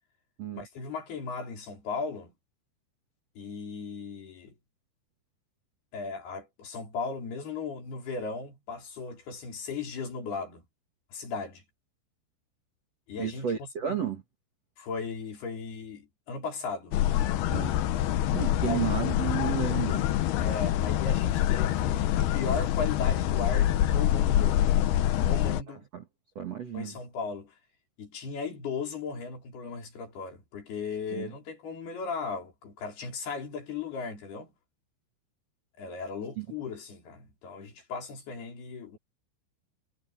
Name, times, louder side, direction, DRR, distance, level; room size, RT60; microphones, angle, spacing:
voice 1, 0.6-2.3 3.4-4.5 5.9-10.6 11.1-11.6 13.1-14.0 14.8-16.9 18.6-18.9 20.4-24.6 25.1-25.9 26.7-27.5 28.0-34.5 35.8-39.0, left 4 dB, 55° left, 6.3 m, -37 dB
voice 2, 13.2-14.2 17.5-17.8 18.3-20.1 25.9-26.0 26.4-26.9 31.1-31.3 36.4-36.5, right 9 dB, 50° right, 2.1 m, -32 dB
sound 1, 16.9-25.6, left 12 dB, 70° left, 2.6 m, -26 dB
omnidirectional pair, 5.5 m